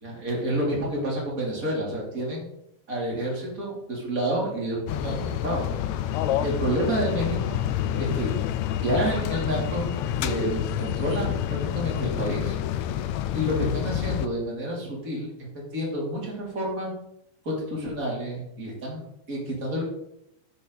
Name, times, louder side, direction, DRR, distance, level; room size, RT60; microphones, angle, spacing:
voice 1, 0.0-2.5 2.9-5.7 6.4-7.6 8.0-8.3 8.8-9.8 10.2-12.6 13.3-15.3 15.7-16.9 17.4-19.8, right 1 dB, 25° right, -3 dB, 3.6 m, -29 dB
sound 1, 4.9-14.3, left 11 dB, 80° left, 1.6 m, -28 dB
10.5 x 8.7 x 4.2 m, 0.77 s
omnidirectional pair, 3.9 m